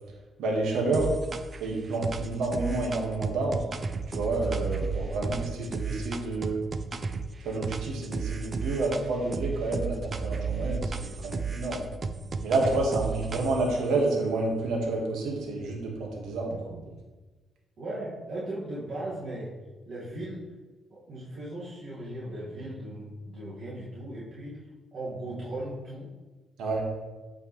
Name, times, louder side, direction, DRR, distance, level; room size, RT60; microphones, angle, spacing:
voice 1, 0.4-1.1 1.6-3.6 4.1-6.6 7.4-11.8 12.4-16.5 26.6-26.8, right 2 dB, 80° right, -1 dB, 1.8 m, -29 dB
sound 1, 0.9-1.7 2.0-7.3 7.6-9.1 9.3-13.8, right 4 dB, 35° right, 0.5 m, -33 dB
voice 2, 5.1-5.6 12.9-13.0 16.5-16.9 17.8-19.5 19.9-20.4 20.9-26.1, right 1 dB, 60° right, -9 dB, 2.1 m, -38 dB
8.6 x 5.1 x 3.3 m, 1.2 s
cardioid pair, 90°, 0 cm